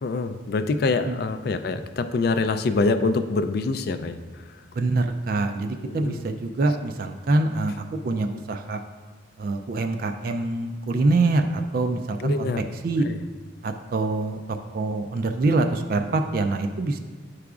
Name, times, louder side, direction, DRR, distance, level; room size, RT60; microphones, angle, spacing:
voice 1, 0.0-4.2 5.9-6.2 12.2-12.7 13.0-13.2, left 3 dB, 50° left, 10 dB, 0.3 m, -25 dB
voice 2, 4.8-8.8 9.4-12.5 12.8-13.1 13.6-14.4 14.7-17.0, right 2 dB, 45° right, 6 dB, 0.3 m, -25 dB
9.2 x 4.8 x 2.4 m, 1.6 s
head